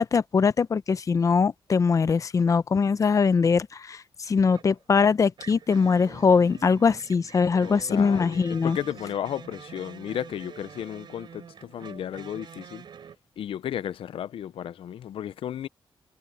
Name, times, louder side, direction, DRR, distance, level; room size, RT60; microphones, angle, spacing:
voice 1, 0.0-8.8, left 5 dB, 35° left, 0.6 m, -22 dB
sound 1, 4.5-4.8 5.4-13.2, right 7 dB, 60° right, 3.2 m, -46 dB
voice 2, 7.6-12.8 13.4-15.7, left 10 dB, 80° left, 0.6 m, -34 dB
wide cardioid pair, 155°, 9 cm